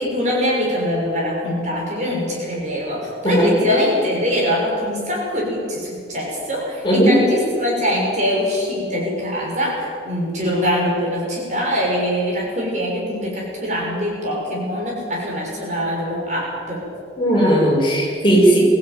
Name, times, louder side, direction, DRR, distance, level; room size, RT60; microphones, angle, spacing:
voice 1, 0.0-16.9, equal, 40° right, -3 dB, 6.7 m, -23 dB
voice 2, 6.8-7.1 17.2-18.6, right 1 dB, 25° left, -4 dB, 6.6 m, -16 dB
24.0 x 15.5 x 9.3 m, 2.2 s
head